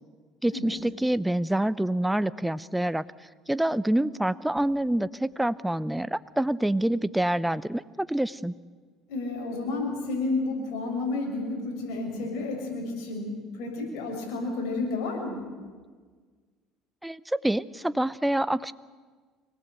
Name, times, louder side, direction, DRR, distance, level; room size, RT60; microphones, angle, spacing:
voice 1, 0.4-3.0 3.5-8.5 17.0-18.7, right 1 dB, 5° right, 16 dB, 0.7 m, -26 dB
voice 2, 9.1-15.4, left 3 dB, 75° left, 0 dB, 6.5 m, -31 dB
24.5 x 19.0 x 8.1 m, 1.5 s
supercardioid pair, 100°, 0 cm